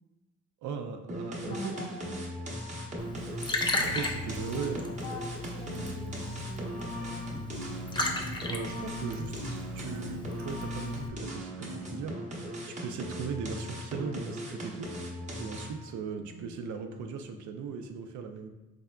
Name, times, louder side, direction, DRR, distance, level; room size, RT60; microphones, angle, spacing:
voice 1, 0.6-1.7 3.8-4.9 8.5-12.1 12.4-15.1 15.4-18.5, right 5 dB, 75° right, 6 dB, 0.5 m, -38 dB
sound 1, 1.1-15.9, equal, 25° right, 0.8 m, -39 dB
voice 2, 1.4-2.1 4.5-7.9 16.2-16.5, left 2 dB, 60° left, -1 dB, 1.0 m, -44 dB
Liquid, 3.0-11.1, left 2 dB, 15° left, 0.4 m, -36 dB
3.6 x 3.4 x 2.2 m, 1.0 s
cardioid pair, 90°, 30 cm